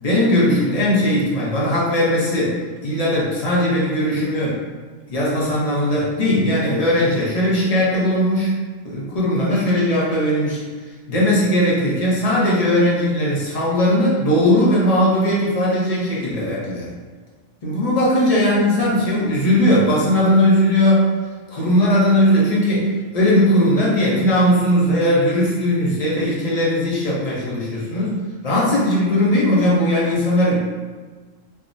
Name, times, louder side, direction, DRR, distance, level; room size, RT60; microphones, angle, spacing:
voice 1, 0.0-4.6 5.1-8.5 8.8-10.6 11.1-16.9 17.6-21.1 21.5-28.2 28.4-30.6, left 1 dB, 40° left, -6 dB, 0.6 m, -18 dB
3.5 x 2.0 x 2.5 m, 1.4 s
omnidirectional pair, 1.3 m